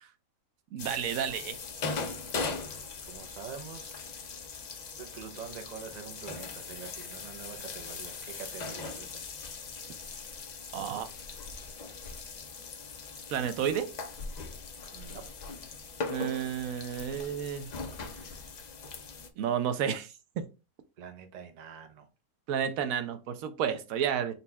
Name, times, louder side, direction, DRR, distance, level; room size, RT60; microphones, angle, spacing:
voice 1, 0.7-1.6 10.7-11.1 13.3-13.9 16.1-17.7 19.4-20.5 22.5-24.3, right 8 dB, 75° right, 1.0 m, -31 dB
sound 1, 0.8-19.3, left 4 dB, 85° left, 0.3 m, -40 dB
voice 2, 3.0-4.0 5.0-9.2 9.8-10.0 10.2-10.3 14.9-15.3 21.0-22.1, right 6 dB, 60° right, 0.4 m, -45 dB
4.2 x 2.3 x 4.1 m
omnidirectional pair, 1.5 m